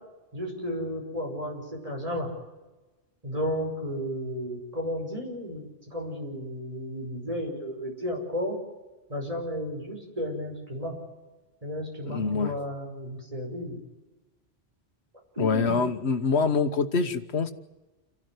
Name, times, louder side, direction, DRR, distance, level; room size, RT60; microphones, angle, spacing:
voice 1, 0.3-2.3 3.2-8.6 9.1-11.0 11.6-13.8 15.4-15.8, equal, 35° right, 0 dB, 5.5 m, -33 dB
voice 2, 12.0-12.5 15.4-17.5, left 4 dB, 80° left, 9 dB, 1.5 m, -25 dB
28.5 x 12.5 x 9.6 m, 1.1 s
omnidirectional pair, 1.1 m